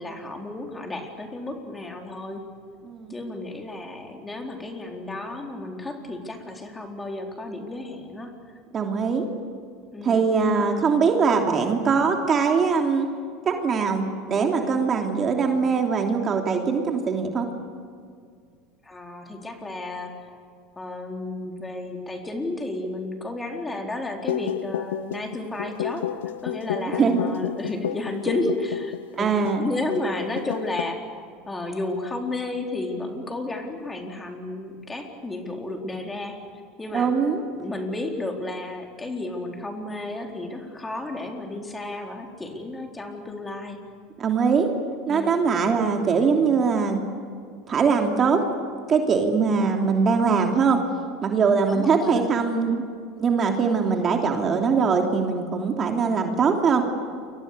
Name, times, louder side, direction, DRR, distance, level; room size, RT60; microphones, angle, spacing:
voice 1, 0.0-2.4 3.1-8.3 9.9-10.2 18.8-20.4 20.8-26.1 26.4-36.4 36.8-37.1 37.5-43.8 45.1-45.4 51.7-52.3, left 2 dB, 15° left, 2 dB, 4.3 m, -32 dB
voice 2, 8.7-9.3 10.0-13.1 13.4-17.5 26.7-27.2 29.1-29.7 36.9-37.4 44.2-44.7 45.1-47.0 47.7-48.4 48.9-50.8 51.2-52.8 53.2-56.8, right 5 dB, 35° right, 3 dB, 3.0 m, -22 dB
sound 1, 24.2-29.7 30.0-30.1 30.4-30.8, left 11 dB, 80° left, 0.6 m, -31 dB
29.0 x 24.0 x 6.9 m, 2.1 s
hypercardioid pair, 80°, 0 cm